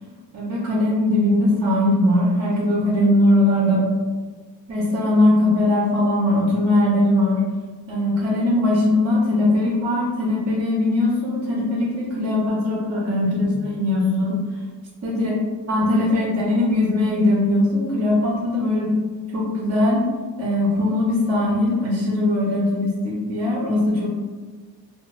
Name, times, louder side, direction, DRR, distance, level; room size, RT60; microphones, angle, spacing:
voice 1, 0.3-3.9 4.7-7.4 7.9-14.3 15.0-15.3 15.7-18.9 19.3-20.0 20.4-24.1, left 1 dB, 35° right, -4 dB, 0.5 m, -20 dB
2.9 x 2.1 x 2.3 m, 1.4 s
wide cardioid pair, 140°, 44 cm